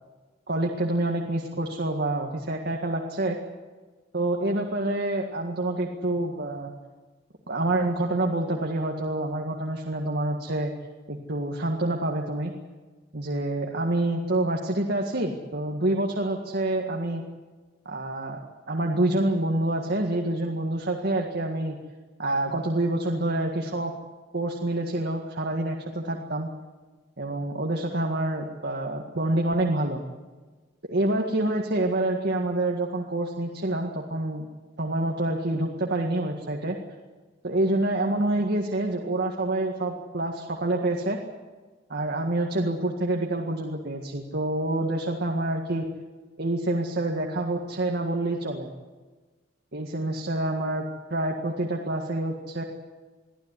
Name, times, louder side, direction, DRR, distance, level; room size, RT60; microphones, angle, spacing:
voice 1, 0.5-3.4 4.1-6.7 7.5-10.7 11.1-12.5 13.1-17.2 17.9-18.4 18.7-21.8 22.2-23.9 24.3-26.5 27.2-30.0 30.9-34.5 34.8-36.8 37.4-41.2 41.9-45.8 46.4-48.7 49.7-50.8 51.1-52.6, right 1 dB, 60° right, 1 dB, 1.9 m, -27 dB
23.5 x 15.0 x 9.8 m, 1.3 s
head